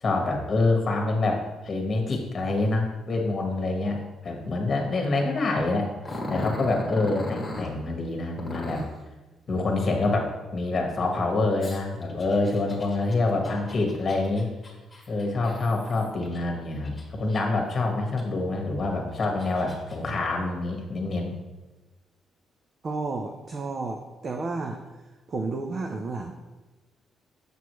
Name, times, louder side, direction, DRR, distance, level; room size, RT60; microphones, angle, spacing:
voice 1, 0.0-5.9 6.3-8.8 9.5-14.5 15.1-21.3, left 2 dB, 40° left, 2 dB, 1.5 m, -26 dB
Growling, 6.0-7.7 8.4-9.0 11.6-16.4 16.8-17.7 18.2-18.3 18.9-20.0, left 1 dB, 25° left, 1.8 m, -38 dB
voice 2, 22.8-24.8 25.3-26.3, right 3 dB, 45° right, 3 dB, 0.6 m, -31 dB
7.1 x 6.0 x 3.1 m, 1.2 s
cardioid pair, 90°, 0 cm